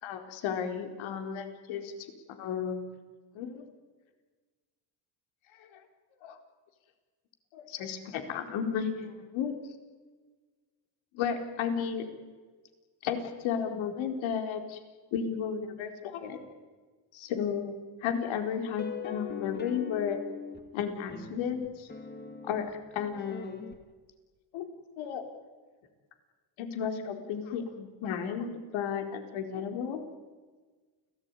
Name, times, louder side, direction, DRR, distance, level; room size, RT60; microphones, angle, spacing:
voice 1, 0.0-1.9 2.3-2.9 3.3-3.6 5.5-5.8 6.2-6.4 7.5-9.5 11.1-12.1 13.0-14.8 15.1-16.4 17.1-20.2 20.7-21.9 22.4-22.7 22.9-23.7 24.5-24.7 25.0-25.2 26.6-30.0, left 7 dB, 75° left, 5 dB, 4.4 m, -33 dB
sound 1, 18.6-20.7 21.1-23.8, left 6 dB, 20° left, 2.7 m, -41 dB
29.5 x 18.5 x 9.9 m, 1.4 s
cardioid pair, 110°, 47 cm